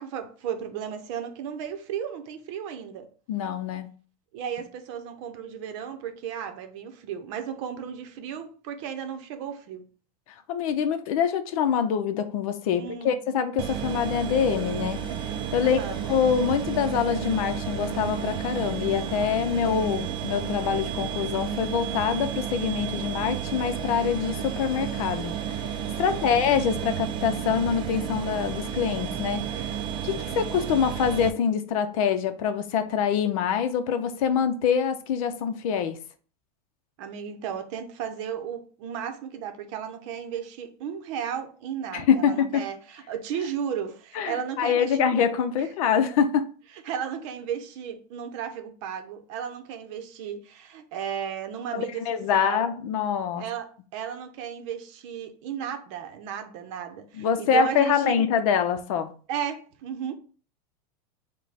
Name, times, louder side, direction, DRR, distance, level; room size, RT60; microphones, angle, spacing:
voice 1, 0.0-3.1 4.3-9.8 12.7-13.2 15.6-16.1 26.0-26.4 37.0-45.1 46.8-52.0 52.3-52.7 53.4-58.2 59.3-60.1, right 8 dB, 50° right, 0.8 m, -34 dB
voice 2, 3.3-3.9 10.5-15.0 15.5-15.8 16.1-25.3 26.0-29.7 30.0-36.0 41.9-42.6 44.1-46.4 51.7-53.5 57.1-59.1, left 7 dB, 60° left, 0.6 m, -25 dB
sound 1, 13.6-31.3, right 8 dB, 25° right, 0.4 m, -32 dB
5.1 x 2.2 x 4.2 m
supercardioid pair, 160°, 20 cm